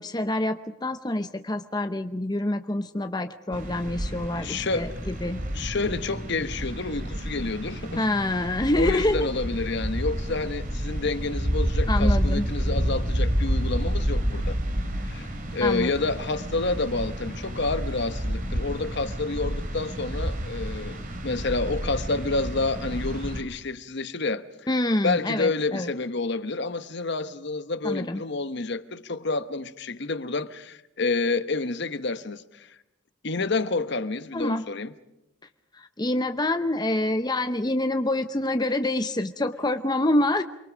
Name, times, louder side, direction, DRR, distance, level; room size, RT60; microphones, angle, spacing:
voice 1, 0.0-5.4 8.0-9.3 11.9-12.5 15.6-15.9 24.7-25.9 27.8-28.2 34.3-34.7 35.7-40.4, left 1 dB, 20° left, 0.7 m, -26 dB
sound 1, 3.5-23.4, equal, 40° right, 2.9 m, -29 dB
voice 2, 4.1-4.9 5.5-8.1 8.8-14.6 15.0-24.4 25.0-32.8 33.2-34.9, left 3 dB, 55° left, 1.0 m, -29 dB
28.5 x 23.0 x 5.1 m
head